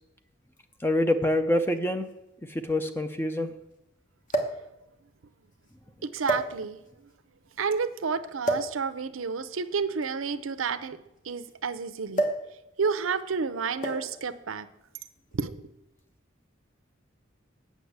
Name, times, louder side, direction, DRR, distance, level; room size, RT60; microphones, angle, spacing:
sound 1, 0.6-0.7 1.7-1.8 2.1-2.2 4.3-4.7 5.5-5.7 6.2-6.9 8.4-8.8 9.9-11.5 12.1-12.5 12.8-13.1 13.8-14.2 15.2-15.4, right 2 dB, 40° left, 1.2 m, -30 dB
voice 1, 0.8-2.1 2.5-3.5, left 1 dB, 10° left, 8 dB, 0.5 m, -26 dB
voice 2, 6.0-6.8 7.6-11.0 11.2-12.3 12.8-14.7 15.4-15.5, right 5 dB, 85° right, 12 dB, 0.7 m, -30 dB
8.2 x 6.1 x 8.0 m, 0.87 s
head